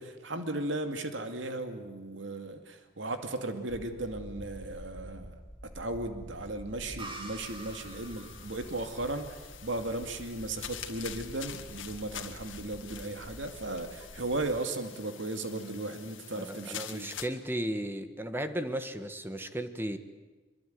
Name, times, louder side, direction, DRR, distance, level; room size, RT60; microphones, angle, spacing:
voice 1, 0.0-5.4 5.7-17.1, right 2 dB, 70° right, 6 dB, 2.4 m, -36 dB
sound 1, 3.7-14.6, equal, 10° left, 1.5 m, -49 dB
sound 2, 7.0-10.5, right 2 dB, 30° right, 3.4 m, -48 dB
sound 3, 7.4-17.3, left 10 dB, 85° left, 2.0 m, -46 dB
voice 2, 16.3-20.0, right 1 dB, 10° right, 9 dB, 1.4 m, -35 dB
24.0 x 23.0 x 9.4 m, 1.3 s
head